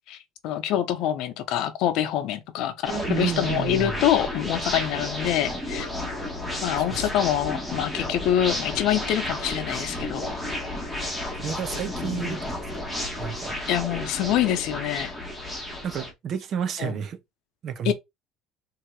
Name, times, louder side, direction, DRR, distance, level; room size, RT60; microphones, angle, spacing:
voice 1, 0.4-5.9 6.6-10.3 12.0-12.4 13.7-15.1 16.8-16.9 17.8-17.9, left 11 dB, 60° left, 0.8 m, -25 dB
sound 1, 2.8-16.1, left 1 dB, ahead, 1.1 m, -32 dB
voice 2, 2.9-4.0 6.8-7.1 11.3-12.9 13.2-13.6 15.8-17.2 17.6-17.9, right 7 dB, 40° right, 0.6 m, -31 dB
3.7 x 2.9 x 4.5 m
cardioid pair, 155°, 0 cm